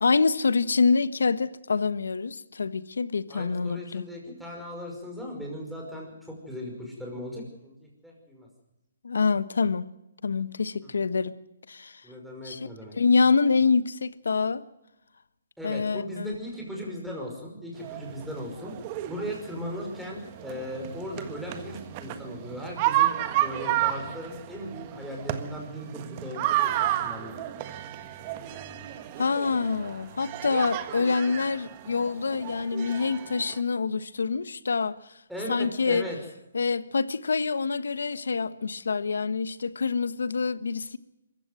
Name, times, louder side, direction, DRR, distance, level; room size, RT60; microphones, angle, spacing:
voice 1, 0.0-4.0 9.0-9.8 10.2-11.3 11.7-12.0 12.4-12.7 12.9-14.6 15.6-16.4 29.2-35.0 35.5-36.1 36.5-41.0, left 4 dB, 85° left, 1.3 m, -26 dB
voice 2, 3.3-8.5 10.8-11.1 12.0-13.0 15.6-18.8 19.1-23.1 23.4-27.4 35.3-36.2, equal, ahead, 5.5 m, -38 dB
sound 1, 17.8-33.6, right 13 dB, 25° right, 1.5 m, -32 dB
23.5 x 15.0 x 7.7 m
hypercardioid pair, 160°, 0 cm